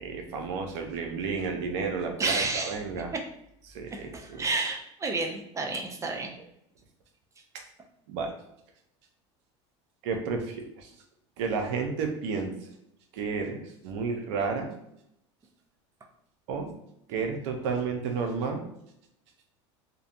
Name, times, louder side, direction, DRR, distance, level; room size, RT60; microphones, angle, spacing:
voice 1, 0.0-3.1 3.7-4.5 8.1-8.3 10.0-10.9 11.4-12.5 13.1-14.7 16.5-16.7 17.1-18.6, right 5 dB, 70° right, 4 dB, 0.5 m, -31 dB
voice 2, 2.2-2.8 3.1-3.2 3.9-6.3, right 3 dB, 20° right, 2 dB, 0.4 m, -30 dB
2.6 x 2.1 x 2.5 m, 0.77 s
hypercardioid pair, 95°, 15 cm